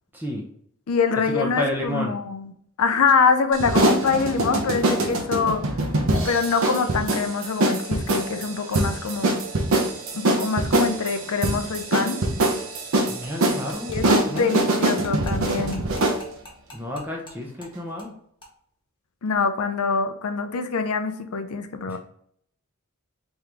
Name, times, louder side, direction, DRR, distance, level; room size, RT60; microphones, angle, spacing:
voice 1, 0.1-0.4 1.2-2.2 13.1-13.9 14.2-15.2 16.7-18.1 21.9-22.0, left 1 dB, 10° right, -1 dB, 0.6 m, -31 dB
voice 2, 0.9-2.5 2.8-5.6 6.2-9.3 10.1-12.2 13.8-15.9 19.2-22.0, left 5 dB, 85° left, 8 dB, 0.5 m, -24 dB
sound 1, 3.5-16.2, right 2 dB, 65° right, 0.8 m, -24 dB
sound 2, 12.9-17.3 17.6-17.7 18.0-18.1 18.4-18.5, left 1 dB, 20° left, 1.0 m, -42 dB
3.8 x 3.0 x 3.4 m, 0.66 s
head